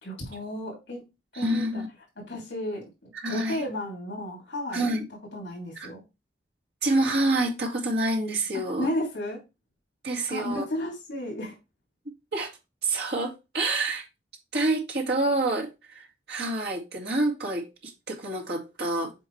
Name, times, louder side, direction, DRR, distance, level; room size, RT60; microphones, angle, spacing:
voice 1, 0.0-1.0 1.3-1.8 2.2-2.9 3.3-4.9 5.3-6.0 8.8-9.4 10.3-11.6, left 1 dB, 75° left, 2.9 m, -33 dB
voice 2, 1.3-1.9 3.2-3.6 4.7-5.1 5.8-5.9 6.8-8.9 10.0-10.7 12.3-12.5 12.8-14.0 14.5-19.1, right 2 dB, 60° right, 2.0 m, -27 dB
7.8 x 4.7 x 3.2 m
head